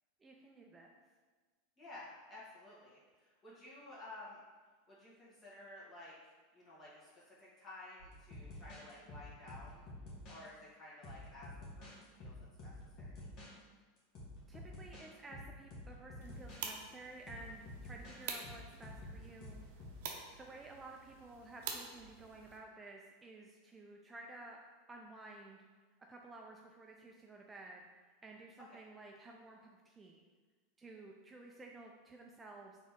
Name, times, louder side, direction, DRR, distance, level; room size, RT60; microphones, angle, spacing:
voice 1, 0.2-0.9 14.5-19.6 20.4-24.6 24.9-25.7 26.1-30.2 30.8-32.8, right 2 dB, 20° right, 0 dB, 0.4 m, -53 dB
voice 2, 1.8-4.4 4.9-9.8 10.3-11.5 11.8-12.3 12.6-13.3 28.7-28.8, left 2 dB, 30° left, -8 dB, 1.5 m, -54 dB
sound 1, 8.0-10.5 11.0-13.5 14.0-16.6 17.3-20.0, left 1 dB, 50° left, 1.3 m, -50 dB
sound 2, 16.2-22.6, right 5 dB, 70° right, 0.6 m, -48 dB
4.1 x 2.9 x 3.6 m, 1.4 s
hypercardioid pair, 105°, 0 cm